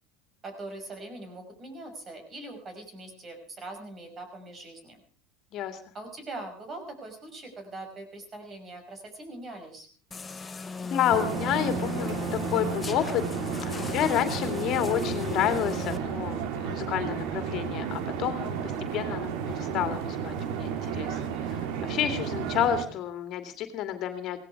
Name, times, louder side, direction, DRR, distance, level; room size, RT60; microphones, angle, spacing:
voice 1, 0.4-5.0 5.9-9.9, right 2 dB, 30° right, 6 dB, 5.9 m, -42 dB
sound 1, 10.1-16.0, left 3 dB, 20° left, 1.1 m, -36 dB
voice 2, 10.8-13.2 13.9-24.4, left 10 dB, 50° left, 8 dB, 2.4 m, -30 dB
sound 2, 11.1-22.8, right 7 dB, 65° right, 2.2 m, -33 dB
17.0 x 16.5 x 4.8 m, 0.43 s
supercardioid pair, 105°, 0 cm